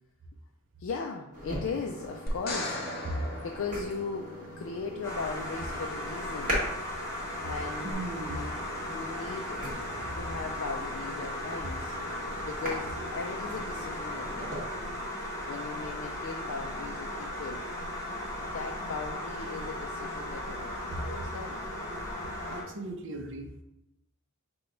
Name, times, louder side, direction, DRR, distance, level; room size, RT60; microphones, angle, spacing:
voice 1, 0.8-2.8 3.4-6.6 7.4-8.0 8.3-8.6 8.9-9.6 10.2-17.7 18.4-21.6, left 4 dB, 60° left, 2 dB, 0.3 m, -38 dB
sound 1, 1.3-14.6, equal, 35° right, 1.3 m, -40 dB
sound 2, 2.3-4.6 7.9-8.0, left 1 dB, 40° left, 0.8 m, -37 dB
sound 3, 5.0-22.6, left 1 dB, 15° left, 1.2 m, -37 dB
voice 2, 7.8-8.5 20.9-21.2 22.5-23.5, right 2 dB, 55° right, 4 dB, 0.6 m, -37 dB
5.8 x 2.3 x 3.7 m, 0.90 s
head